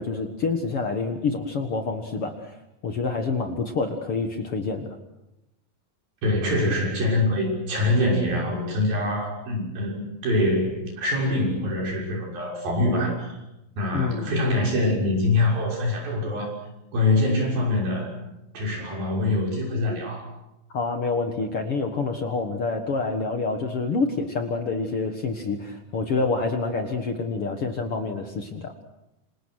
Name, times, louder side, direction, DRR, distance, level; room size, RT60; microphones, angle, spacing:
voice 1, 0.0-2.5 2.8-5.0 13.9-14.3 20.7-28.7, left 4 dB, 50° left, 5 dB, 2.0 m, -27 dB
voice 2, 6.2-13.4 13.8-16.5 16.9-18.1 18.5-20.3, left 2 dB, 75° right, -1 dB, 8.2 m, -24 dB
28.0 x 27.0 x 6.4 m, 0.90 s
omnidirectional pair, 4.2 m